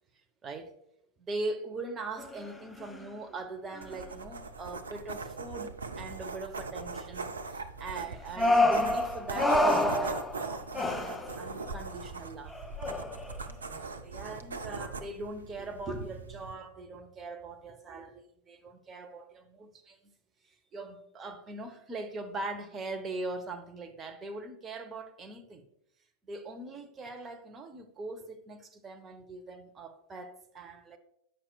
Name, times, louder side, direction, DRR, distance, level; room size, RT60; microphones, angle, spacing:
voice 1, 1.3-12.6 13.6-20.1 20.7-25.6 26.3-31.0, right 2 dB, 20° right, 0.7 m, -41 dB
sound 1, 2.2-2.5 2.8-3.1 3.8-4.0 8.4-11.7 12.5-13.4, left 1 dB, 10° left, 0.4 m, -28 dB
sound 2, 3.8-16.5, right 4 dB, 75° right, 0.4 m, -40 dB
8.8 x 5.8 x 2.3 m
figure-of-eight pair, 90°, 0 cm